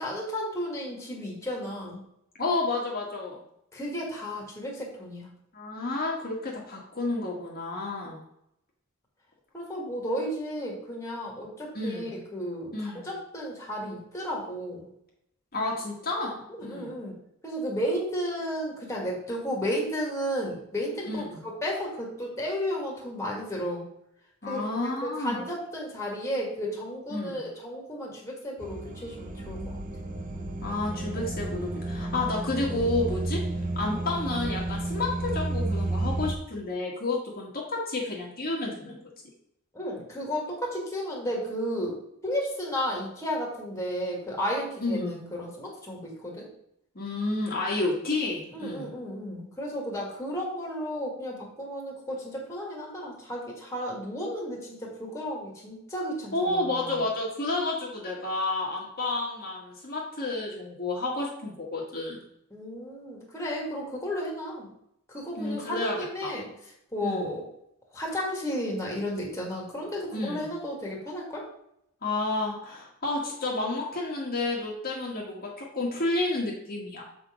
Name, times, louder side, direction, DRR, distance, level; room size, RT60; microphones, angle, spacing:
voice 1, 0.0-2.0 3.7-5.3 9.5-14.9 16.5-23.9 24.5-29.6 39.7-42.0 42.2-46.5 48.5-57.0 62.5-64.7 65.1-66.5 66.9-67.4 67.9-71.4, equal, 15° left, -2 dB, 1.8 m, -33 dB
voice 2, 2.4-3.4 5.5-8.2 11.7-12.1 12.7-13.1 15.5-16.9 21.1-21.4 24.4-25.4 27.1-27.4 30.6-33.4 33.7-39.0 44.8-45.2 46.9-48.9 56.3-62.2 65.4-66.3 67.0-67.3 70.1-70.4 72.0-77.0, left 2 dB, 45° left, -3 dB, 1.5 m, -30 dB
sound 1, 28.6-36.4, right 2 dB, 40° right, 0.7 m, -32 dB
7.0 x 3.9 x 4.9 m, 0.76 s
head